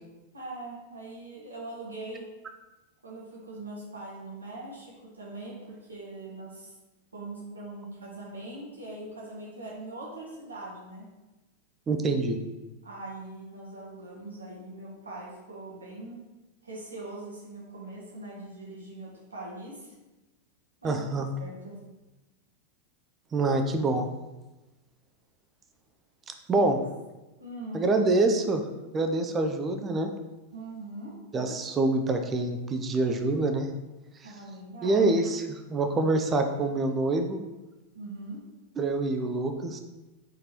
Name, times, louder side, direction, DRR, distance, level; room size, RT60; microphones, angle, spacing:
voice 1, 0.3-2.3 3.0-6.7 7.1-11.1 12.8-16.2 16.6-19.9 20.8-21.0 21.4-21.8 26.5-26.7 27.4-27.8 30.5-31.1 34.2-35.1 37.9-38.4, right 2 dB, 75° right, -5 dB, 0.9 m, -41 dB
voice 2, 11.9-12.4 20.8-21.3 23.3-24.1 26.3-26.8 27.7-28.6 28.9-30.1 31.3-33.7 34.8-37.4 38.8-39.8, right 2 dB, 20° right, 5 dB, 0.4 m, -26 dB
4.0 x 3.1 x 3.0 m, 1.1 s
figure-of-eight pair, 90°, 0 cm